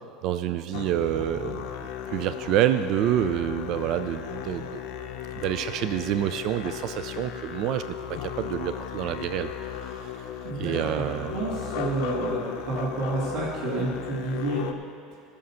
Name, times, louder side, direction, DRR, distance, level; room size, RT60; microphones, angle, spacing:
voice 1, 0.2-4.8 5.3-7.8 8.1-10.2 10.6-11.3, right 11 dB, 40° right, 10 dB, 0.3 m, -28 dB
Musical instrument, 0.7-14.7, left 9 dB, 60° left, 0.6 m, -36 dB
voice 2, 10.4-11.0 11.3-14.7, right 2 dB, 70° right, -8 dB, 2.1 m, -29 dB
14.5 x 6.4 x 5.6 m, 2.5 s
cardioid pair, 170°, 0 cm